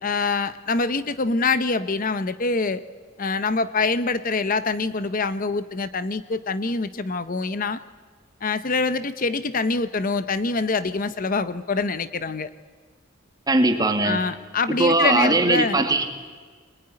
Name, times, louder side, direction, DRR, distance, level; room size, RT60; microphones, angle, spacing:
voice 1, 0.0-2.8 3.2-7.8 8.4-12.5 14.0-15.8, left 4 dB, 40° left, 12 dB, 0.7 m, -25 dB
voice 2, 13.5-14.2 14.8-16.0, right 2 dB, 20° right, 5 dB, 2.2 m, -19 dB
24.0 x 20.5 x 9.9 m, 1.5 s
head